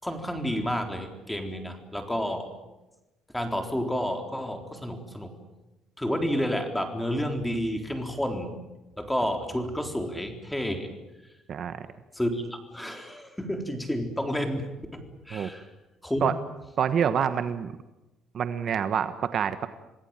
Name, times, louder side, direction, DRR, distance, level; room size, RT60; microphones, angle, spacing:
voice 1, 0.0-2.5 3.3-5.3 6.0-8.5 9.0-10.9 12.1-12.4 12.7-15.7 16.0-16.3, equal, 5° left, 5 dB, 3.9 m, -30 dB
voice 2, 16.8-17.7 18.3-19.7, right 8 dB, 50° right, 10 dB, 1.3 m, -26 dB
27.5 x 19.0 x 9.0 m, 1.0 s
cardioid pair, 125°, 0 cm